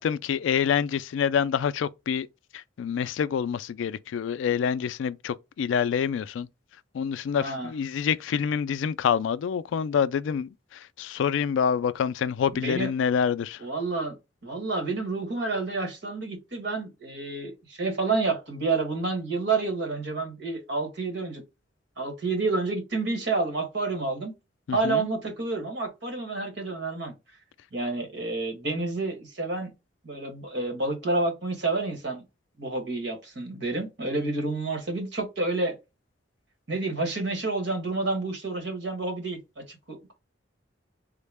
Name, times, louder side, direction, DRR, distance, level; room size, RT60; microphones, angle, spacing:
voice 1, 0.0-2.3 2.5-6.5 6.9-10.5 11.0-13.6 24.7-25.1, left 7 dB, 80° left, 0.3 m, -26 dB
voice 2, 7.4-7.7 12.5-12.9 13.6-14.1 14.4-21.4 22.0-24.3 24.7-27.1 27.7-29.7 30.0-32.2 32.6-35.8 36.7-40.1, right 3 dB, 65° right, 1.2 m, -29 dB
3.7 x 2.1 x 3.3 m
head